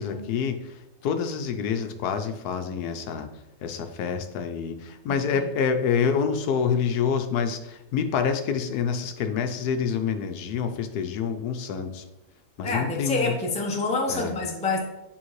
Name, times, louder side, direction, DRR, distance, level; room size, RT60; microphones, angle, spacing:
voice 1, 0.0-3.3 3.6-12.0 12.6-13.3 14.1-14.3, left 6 dB, 75° left, 7 dB, 1.1 m, -27 dB
voice 2, 12.6-14.8, left 3 dB, 10° left, 0 dB, 0.4 m, -27 dB
8.9 x 3.6 x 3.1 m, 0.89 s
omnidirectional pair, 1.7 m